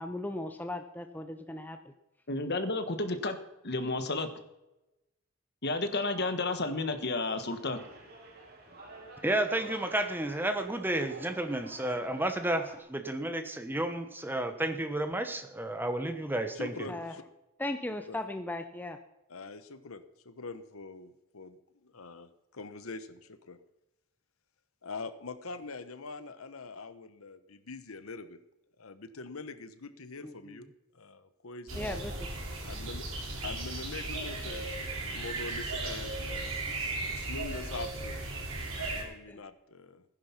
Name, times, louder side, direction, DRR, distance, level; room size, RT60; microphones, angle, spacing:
voice 1, 0.0-1.8 16.9-17.1 17.6-19.0 30.2-30.5 31.8-32.1 39.3-39.4, left 1 dB, 10° left, 7 dB, 0.6 m, -37 dB
voice 2, 2.3-3.4 3.6-4.3 5.6-7.8, left 2 dB, 50° left, 9 dB, 1.4 m, -31 dB
sound 1, 7.3-12.8, right 2 dB, 45° right, 3.2 m, -49 dB
voice 3, 9.2-16.9, right 1 dB, 10° right, 7 dB, 1.2 m, -32 dB
voice 4, 16.5-17.2 17.9-18.2 19.3-23.6 24.8-28.4 28.8-30.7 30.9-32.0 32.6-33.0 33.4-38.2 38.6-40.0, left 3 dB, 75° left, 11 dB, 1.0 m, -44 dB
sound 2, 31.7-39.0, right 2 dB, 75° right, 5.2 m, -36 dB
15.5 x 10.5 x 5.9 m, 0.94 s
head